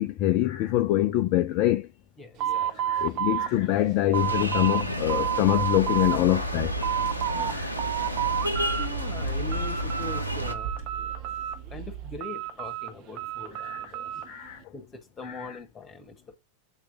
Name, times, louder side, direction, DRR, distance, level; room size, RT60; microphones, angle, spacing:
voice 1, 0.0-1.9 2.7-6.7 7.5-7.7 13.5-13.9 14.3-14.6 15.2-15.6, left 14 dB, 45° left, 0.4 m, -25 dB
voice 2, 2.2-2.7 7.3-7.7 8.8-10.9 11.7-14.1 14.7-16.4, left 2 dB, 20° left, 1.4 m, -42 dB
sound 1, 2.4-4.8 5.1-6.2 6.6-7.5 7.8-8.9 9.2-10.2 10.5-11.7 12.2-14.3, right 10 dB, 40° right, 0.7 m, -30 dB
sound 2, 4.1-10.5, equal, 90° right, 0.7 m, -31 dB
Car / Engine, 5.6-12.2, right 10 dB, 60° right, 2.7 m, -40 dB
8.0 x 3.2 x 5.3 m
figure-of-eight pair, 90°, 0 cm